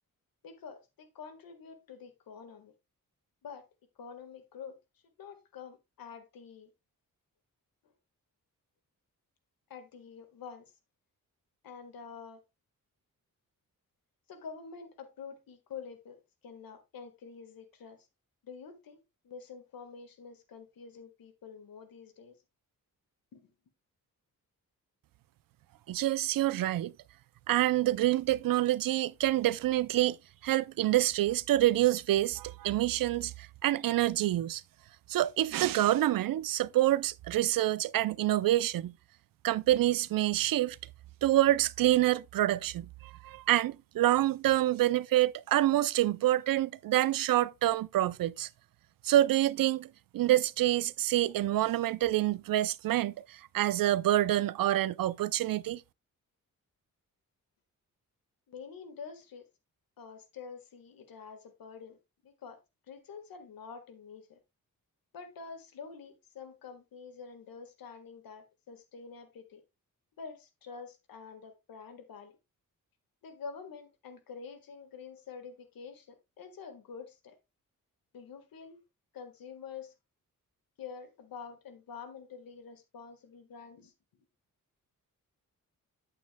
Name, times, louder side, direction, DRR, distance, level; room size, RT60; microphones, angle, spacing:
voice 1, 0.4-2.7 3.4-3.7 4.0-4.8 5.2-6.7 7.8-7.9 9.7-10.7 11.6-12.4 14.3-16.2 16.4-18.1 18.4-22.4 23.3-23.5 58.5-59.4 60.0-62.6 62.9-64.4 65.1-69.6 70.2-72.4 73.2-77.4 78.1-78.8 79.1-79.9 80.8-84.2, left 6 dB, 90° left, 1.6 m, -47 dB
voice 2, 25.9-26.9 27.5-30.2 30.4-34.6 35.1-38.9 39.4-40.8 41.2-48.5 49.0-49.9 50.1-55.8, right 14 dB, 80° right, 0.5 m, -27 dB
9.3 x 8.5 x 2.2 m
wide cardioid pair, 110°, 34 cm